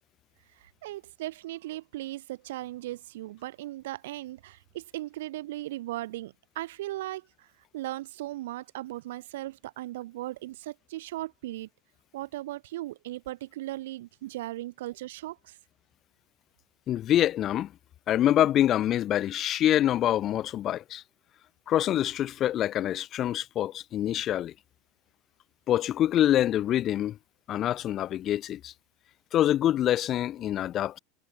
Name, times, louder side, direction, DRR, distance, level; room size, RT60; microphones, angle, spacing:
voice 1, 0.5-11.7 12.1-15.6, right 16 dB, 65° right, 5.5 m, -38 dB
voice 2, 16.9-17.7 18.1-21.0 21.7-24.5 25.7-27.2 27.5-28.7 29.3-31.0, left 12 dB, 40° left, 1.7 m, -25 dB
figure-of-eight pair, 80°, 0 cm